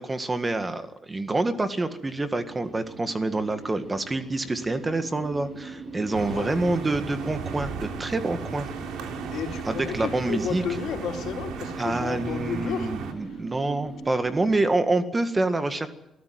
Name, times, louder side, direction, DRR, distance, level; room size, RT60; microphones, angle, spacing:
voice 1, 0.1-8.7 9.7-10.6 11.8-15.9, right 2 dB, 20° right, 9 dB, 1.9 m, -27 dB
sound 1, 1.5-14.6, right 4 dB, 45° right, 4.0 m, -41 dB
sound 2, 6.1-13.1, right 5 dB, 90° right, 3.3 m, -36 dB
voice 2, 9.3-12.9 13.2-13.4, left 7 dB, 75° left, 2 dB, 3.8 m, -32 dB
23.0 x 14.5 x 9.6 m, 0.88 s
cardioid pair, 90°, 0 cm